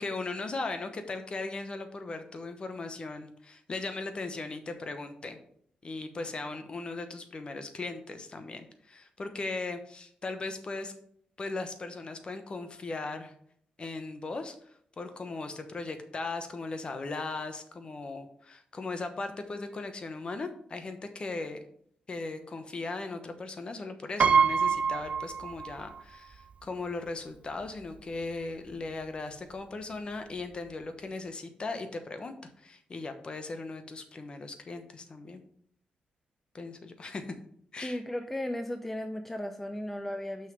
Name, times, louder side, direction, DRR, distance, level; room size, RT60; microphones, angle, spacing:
voice 1, 0.0-5.4 5.8-10.9 11.4-13.3 13.8-14.6 15.0-21.6 22.1-35.4 36.5-37.2 37.7-38.0, left 3 dB, 35° left, 8 dB, 1.0 m, -38 dB
Piano, 24.2-26.0 26.3-26.4 27.6-27.7 28.0-28.2, right 6 dB, 50° right, 0.5 m, -26 dB
voice 2, 37.8-40.5, left 1 dB, 10° left, 7 dB, 0.5 m, -35 dB
6.3 x 5.7 x 5.4 m, 0.65 s
cardioid pair, 120°, 3 cm